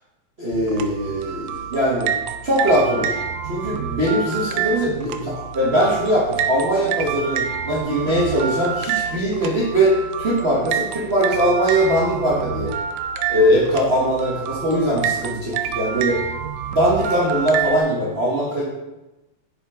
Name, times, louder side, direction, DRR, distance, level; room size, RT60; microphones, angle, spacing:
voice 1, 0.4-2.1 2.4-3.2 3.4-12.7 13.3-16.2 16.7-18.6, equal, 65° right, -7 dB, 0.6 m, -21 dB
sound 1, 0.5-17.8, right 8 dB, 80° right, 1.8 m, -28 dB
6.9 x 5.9 x 3.6 m, 1.0 s
omnidirectional pair, 3.3 m